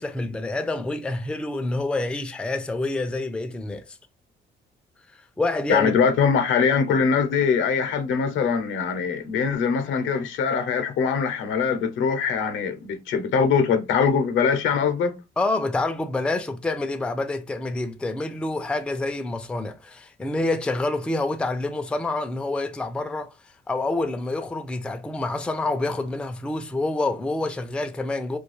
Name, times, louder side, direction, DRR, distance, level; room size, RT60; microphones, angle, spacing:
voice 1, 0.0-4.0 5.1-5.9 15.4-28.4, left 2 dB, 5° left, 0.3 m, -27 dB
voice 2, 5.7-15.2, left 6 dB, 75° left, 0.6 m, -22 dB
2.3 x 2.3 x 3.0 m
cardioid pair, 90°, 20 cm